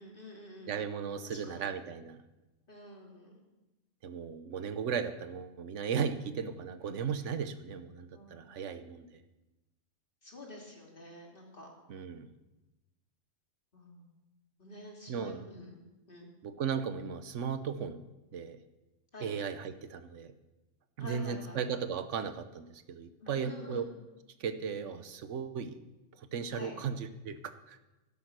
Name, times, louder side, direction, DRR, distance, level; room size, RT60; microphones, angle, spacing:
voice 1, 0.0-0.7 1.2-1.7 2.7-3.4 8.1-8.6 10.2-11.7 13.7-14.1 14.6-15.8 16.1-16.3 19.1-19.3 21.0-21.6 23.2-23.8 26.5-26.7, left 1 dB, 45° left, -1 dB, 2.9 m, -48 dB
voice 2, 0.7-2.2 4.0-9.2 11.9-12.3 15.1-15.5 16.4-18.0 18.3-18.6 19.2-20.3 21.0-23.8 24.4-25.8 26.2-27.8, right 6 dB, 75° right, 11 dB, 1.2 m, -36 dB
12.5 x 11.5 x 6.1 m, 1.0 s
omnidirectional pair, 1.3 m